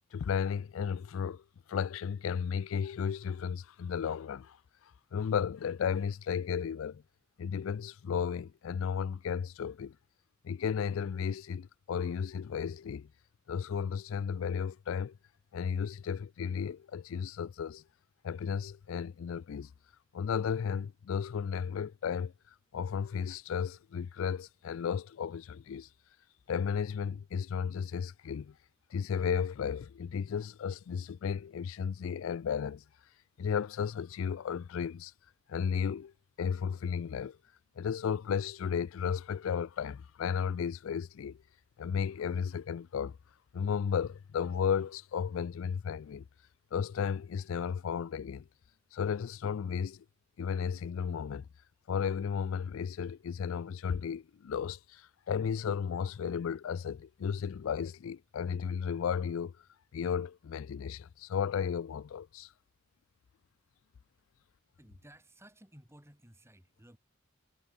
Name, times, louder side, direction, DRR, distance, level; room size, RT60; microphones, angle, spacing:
voice 1, 0.1-1.4 1.7-4.6 5.1-7.0 7.4-10.0 10.4-13.1 13.5-15.1 15.5-17.8 18.2-19.7 20.1-22.3 22.7-25.9 26.5-28.5 28.9-32.8 33.4-35.1 35.5-36.1 36.4-37.4 37.8-41.4 41.8-43.2 43.5-46.2 46.7-48.4 48.9-50.0 50.4-51.5 51.9-59.5 59.9-62.5, left 7 dB, 80° left, 0.4 m, -34 dB
voice 2, 64.8-67.0, right 1 dB, 15° right, 3.5 m, -56 dB
head